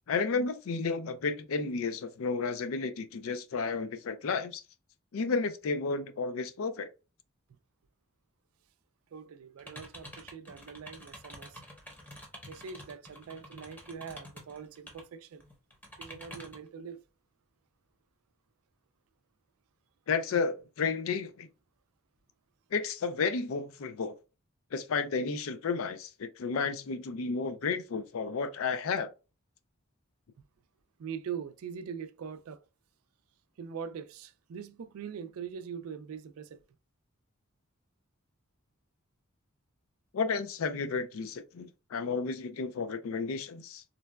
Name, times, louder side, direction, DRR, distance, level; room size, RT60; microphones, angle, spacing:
voice 1, 0.1-4.6 5.1-6.9 20.1-21.5 22.7-24.1 24.7-29.1 40.1-43.8, left 4 dB, 70° left, 0.4 m, -32 dB
voice 2, 9.1-11.6 12.5-15.5 16.0-17.0 31.0-32.6 33.6-36.6, right 7 dB, 80° right, 0.3 m, -42 dB
sound 1, 9.6-15.0 15.4-16.7, equal, 10° left, 0.7 m, -48 dB
3.8 x 2.2 x 2.2 m
head